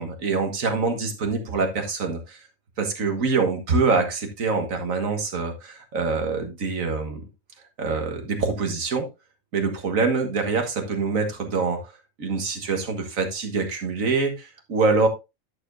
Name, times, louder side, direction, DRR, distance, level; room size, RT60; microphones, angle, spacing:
voice 1, 0.0-2.4 2.8-7.2 7.8-9.1 9.5-11.9 12.2-15.1, right 4 dB, 85° right, 5 dB, 1.9 m, -25 dB
10.5 x 6.8 x 2.6 m, 0.24 s
omnidirectional pair, 1.4 m